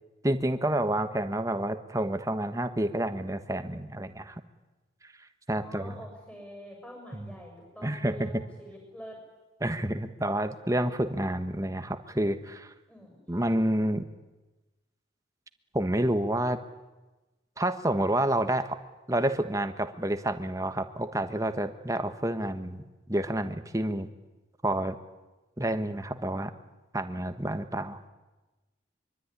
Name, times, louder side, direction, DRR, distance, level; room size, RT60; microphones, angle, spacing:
voice 1, 0.2-4.4 5.0-5.1 5.5-6.0 7.1-7.3 7.8-8.3 9.6-12.7 13.3-14.0 15.7-16.6 17.6-18.8 19.1-24.1 24.6-25.0 25.6-26.5 26.9-28.0, right 1 dB, 15° right, 9 dB, 1.3 m, -29 dB
voice 2, 5.5-9.2 12.9-13.2, equal, 5° left, 0 dB, 6.9 m, -46 dB
24.5 x 24.0 x 9.9 m, 1.1 s
head